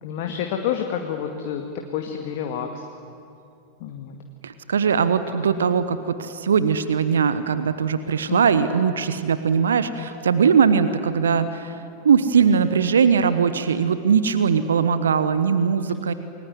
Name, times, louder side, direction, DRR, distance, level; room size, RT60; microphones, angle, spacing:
voice 1, 0.0-1.6 1.9-2.9 3.8-4.2 8.3-8.4, left 8 dB, 50° left, 3 dB, 2.1 m, -28 dB
voice 2, 4.4-11.8 12.0-16.1, right 6 dB, 65° right, 12 dB, 1.2 m, -20 dB
29.0 x 21.0 x 9.5 m, 2.6 s
figure-of-eight pair, 90°, 0 cm